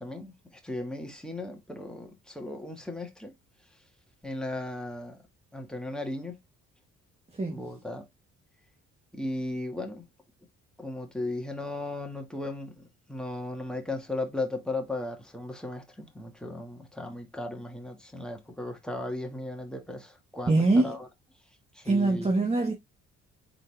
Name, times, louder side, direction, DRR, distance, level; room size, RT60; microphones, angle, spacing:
voice 1, 0.0-3.3 4.2-5.2 5.5-6.3 7.5-8.0 9.1-10.0 10.8-21.1 21.7-22.3, left 2 dB, 5° left, 1.6 m, -36 dB
voice 2, 7.3-7.7 20.5-21.0 21.8-22.7, right 2 dB, 20° right, 1.0 m, -24 dB
4.0 x 3.9 x 3.2 m
cardioid pair, 90°, 30 cm